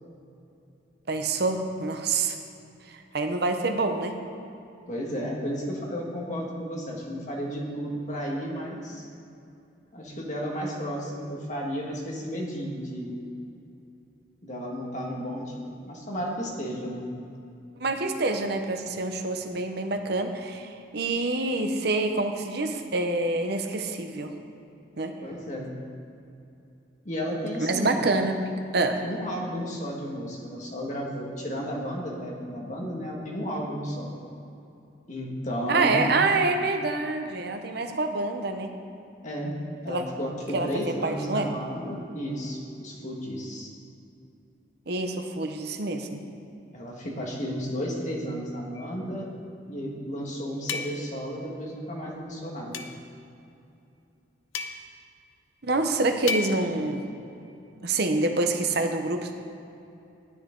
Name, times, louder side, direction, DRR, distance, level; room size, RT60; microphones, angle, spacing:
voice 1, 1.1-2.4 2.9-4.1 17.8-24.3 25.0-25.1 27.6-28.4 28.7-29.0 35.7-38.7 39.9-40.0 40.5-40.7 41.0-41.5 44.9-46.2 55.6-57.0 57.8-59.3, right 3 dB, 55° right, 5 dB, 0.8 m, -26 dB
voice 2, 4.9-9.1 9.9-13.2 14.4-17.1 25.2-25.7 27.0-28.1 29.0-34.1 35.1-36.2 39.2-39.5 39.8-43.7 46.7-49.3 49.7-52.8, equal, 40° left, -2 dB, 1.7 m, -33 dB
sound 1, 48.7-49.0 50.7-51.2 52.7-53.1 54.5-55.0 56.3-56.8, left 5 dB, 85° left, 0.7 m, -34 dB
13.0 x 9.6 x 3.8 m, 2.7 s
head